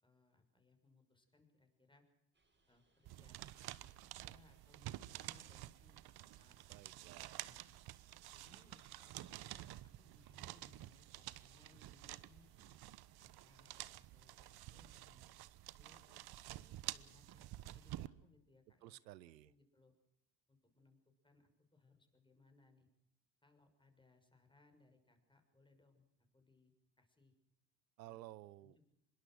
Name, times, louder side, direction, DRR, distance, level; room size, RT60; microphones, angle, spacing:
voice 1, 0.0-2.0 2.7-6.0 6.4-6.6 7.4-7.8 8.3-12.8 13.2-15.3 15.7-16.2 16.5-16.6 16.9-17.4 17.7-19.0 19.4-19.9 20.5-21.0 21.2-22.9 23.4-26.7 27.0-27.3 28.0-28.2 28.6-28.9, left 3 dB, 10° left, 5 dB, 6.2 m, -70 dB
sound 1, 2.3-13.0, right 3 dB, 20° right, 6.3 m, -77 dB
sound 2, 3.1-18.1, right 15 dB, 50° right, 1.2 m, -51 dB
voice 2, 6.7-7.5 18.8-19.5 28.0-28.7, right 16 dB, 85° right, 20 dB, 0.8 m, -55 dB
25.0 x 22.0 x 6.3 m, 0.82 s
hypercardioid pair, 75°, 49 cm